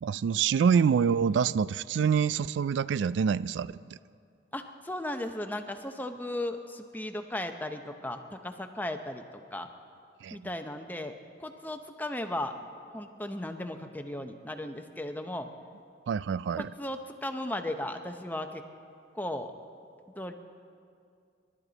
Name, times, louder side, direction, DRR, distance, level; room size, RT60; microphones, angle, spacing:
voice 1, 0.0-3.7 10.2-10.4 16.1-16.7, right 7 dB, 80° right, 17 dB, 0.3 m, -26 dB
voice 2, 4.5-9.7 10.3-11.1 11.4-12.5 12.9-15.5 16.6-18.6 19.1-19.5 20.1-20.3, left 1 dB, 10° left, 6 dB, 0.8 m, -36 dB
29.0 x 12.0 x 4.0 m, 2.4 s
head